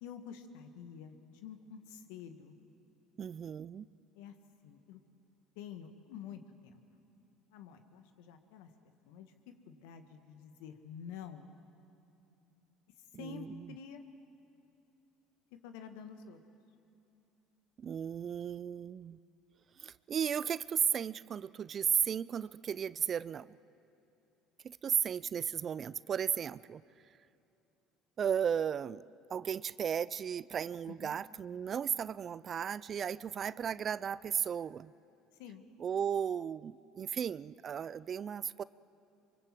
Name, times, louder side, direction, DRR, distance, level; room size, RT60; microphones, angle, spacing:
voice 1, 0.0-2.6 4.2-4.4 4.6-5.0 5.6-6.8 7.5-9.3 9.7-11.5 13.1-14.1 15.6-16.4 30.9-31.2 35.4-35.6, left 7 dB, 75° left, 8 dB, 1.8 m, -48 dB
voice 2, 3.2-3.9 13.1-13.7 17.8-19.2 19.8-23.6 24.6-26.8 28.2-29.0 29.3-34.9 35.8-38.6, right 8 dB, 45° right, 19 dB, 0.5 m, -35 dB
25.0 x 24.0 x 7.7 m, 2.9 s
hypercardioid pair, 70°, 0 cm